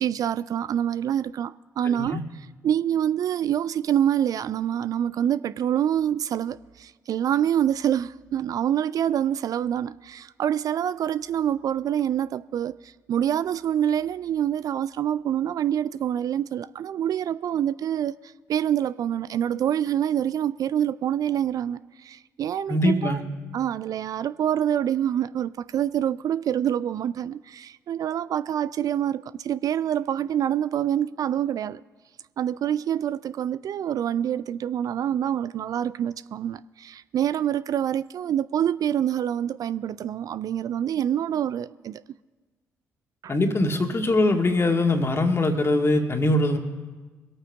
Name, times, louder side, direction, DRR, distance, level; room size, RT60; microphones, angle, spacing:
voice 1, 0.0-2.2 2.6-18.1 18.5-23.2 23.5-31.8 32.4-42.0 43.2-43.3, right 10 dB, 55° right, 0.3 m, -26 dB
voice 2, 22.7-23.2 43.3-46.6, left 2 dB, 35° left, 2.0 m, -22 dB
23.0 x 8.8 x 3.6 m
hypercardioid pair, 40°, 8 cm